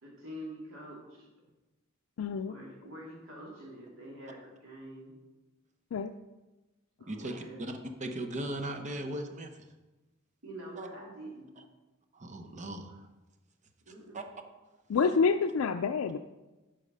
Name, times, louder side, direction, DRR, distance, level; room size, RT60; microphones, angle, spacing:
voice 1, 0.0-1.3 2.5-5.1 7.0-7.7 10.4-11.5 13.9-14.2, right 1 dB, 75° right, -3 dB, 2.9 m, -46 dB
voice 2, 2.2-2.6 5.9-6.1 14.9-16.2, left 5 dB, 85° left, 6 dB, 0.4 m, -27 dB
voice 3, 7.1-7.7 8.0-9.7 10.8-10.9 12.1-13.0 14.1-14.2, right 1 dB, 35° right, 5 dB, 0.9 m, -38 dB
8.3 x 5.7 x 5.4 m, 1.1 s
head